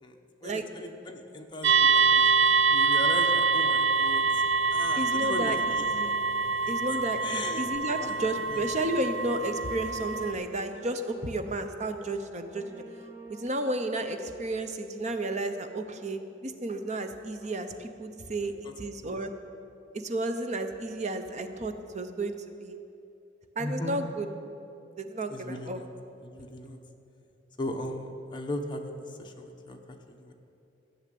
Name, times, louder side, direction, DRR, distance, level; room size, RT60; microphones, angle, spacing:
voice 1, 0.0-4.4 4.7-5.9 6.4-6.7 7.2-7.7 8.0-8.7 18.4-18.7 19.0-19.2 23.6-24.0 25.3-25.9 26.2-26.8 27.6-29.8 30.1-30.3, left 1 dB, 25° left, 2 dB, 1.0 m, -38 dB
sound 1, 1.6-10.3, right 4 dB, 70° right, 0.5 m, -25 dB
voice 2, 5.0-5.6 5.9-6.2 6.7-12.8 13.3-18.5 18.8-19.3 19.9-22.3 22.6-22.8 23.6-24.3 25.0-25.8, right 2 dB, 40° right, 7 dB, 0.8 m, -32 dB
sound 2, 9.3-14.6, equal, 15° right, 1.0 m, -49 dB
13.5 x 6.4 x 9.3 m, 2.8 s
head